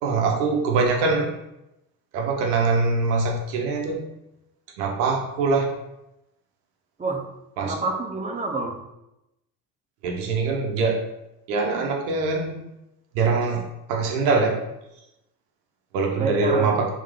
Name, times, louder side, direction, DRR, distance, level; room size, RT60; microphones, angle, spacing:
voice 1, 0.0-1.3 2.1-4.1 4.8-5.7 7.6-7.7 10.0-11.0 11.5-12.6 13.1-14.6 15.9-16.9, right 4 dB, 85° right, 2 dB, 0.9 m, -23 dB
voice 2, 7.6-8.8 16.2-16.8, right 3 dB, 15° right, 3 dB, 0.6 m, -27 dB
3.6 x 2.8 x 3.6 m, 0.89 s
hypercardioid pair, 70°, 47 cm